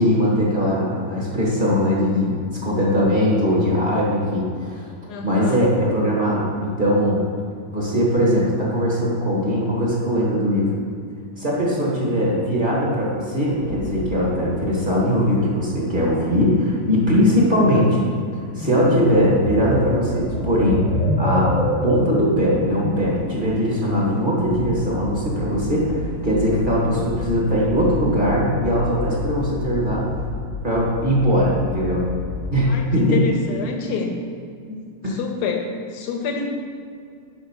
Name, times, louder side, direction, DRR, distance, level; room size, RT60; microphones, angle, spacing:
voice 1, 0.0-4.9 5.2-7.2 7.7-10.8 11.4-18.0 18.3-20.8 21.2-21.6 21.8-30.1 30.6-32.0 32.5-33.2 35.0-35.2, equal, 30° right, -5 dB, 1.4 m, -20 dB
voice 2, 5.1-5.6 32.7-34.1 34.7-36.5, left 4 dB, 60° left, 3 dB, 1.4 m, -27 dB
sound 1, 13.6-16.6 16.9-17.1 17.4-17.5 17.8-26.7, left 1 dB, 80° left, 2.2 m, -37 dB
sound 2, 18.5-23.2, left 1 dB, 25° left, 0.9 m, -24 dB
sound 3, 24.4-32.5, left 2 dB, 70° right, 1.7 m, -31 dB
11.0 x 4.6 x 4.6 m, 2.2 s
omnidirectional pair, 2.1 m